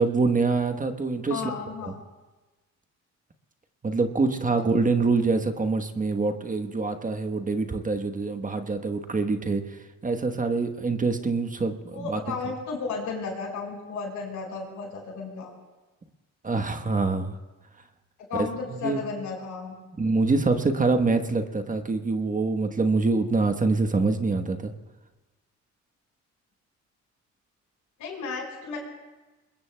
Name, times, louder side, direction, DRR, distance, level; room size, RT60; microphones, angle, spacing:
voice 1, 0.0-1.5 1.8-1.9 3.8-12.2 16.4-17.4 18.4-19.0 20.0-24.7, right 3 dB, 25° right, 7 dB, 1.2 m, -25 dB
voice 2, 1.3-2.0 11.9-15.5 18.3-19.8 28.0-28.8, left 5 dB, 85° left, 0 dB, 5.2 m, -34 dB
27.0 x 21.5 x 2.3 m, 1.2 s
cardioid pair, 90°, 30 cm